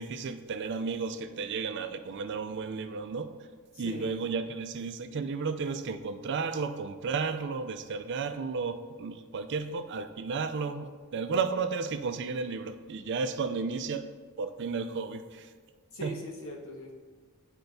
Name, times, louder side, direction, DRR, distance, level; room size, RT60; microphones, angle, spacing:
voice 1, 0.0-3.3 3.8-14.1 14.4-15.5 16.0-16.1, right 5 dB, 55° right, 9 dB, 0.4 m, -33 dB
voice 2, 3.7-4.2 15.9-16.9, equal, 65° left, -2 dB, 1.1 m, -40 dB
10.5 x 4.5 x 2.6 m, 1.5 s
head